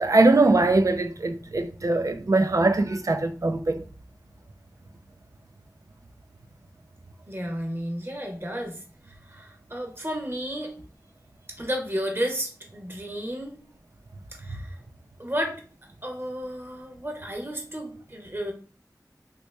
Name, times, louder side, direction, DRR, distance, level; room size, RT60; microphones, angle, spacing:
voice 1, 0.0-3.8, right 2 dB, 55° right, 0.5 m, -21 dB
voice 2, 7.3-8.8 9.3-10.7 11.6-13.5 14.4-14.7 15.2-15.6 16.0-18.5, equal, 35° right, 1.1 m, -32 dB
3.0 x 2.9 x 3.3 m
wide cardioid pair, 55°, 7 cm